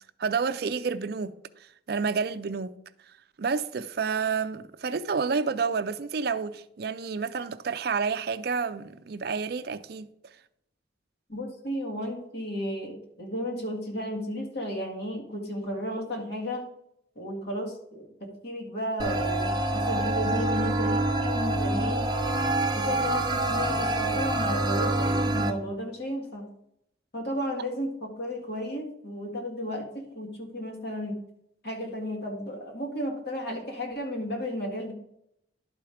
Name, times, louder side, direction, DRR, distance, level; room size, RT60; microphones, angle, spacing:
voice 1, 0.2-1.3 1.9-2.7 3.4-10.1, right 5 dB, 55° right, 0.4 m, -29 dB
voice 2, 11.3-16.7 17.2-22.1 22.7-26.5 27.1-31.2 31.6-34.9, equal, 60° left, 2.0 m, -33 dB
sound 1, 19.0-25.5, right 2 dB, 20° right, 0.7 m, -26 dB
11.0 x 4.5 x 4.9 m
head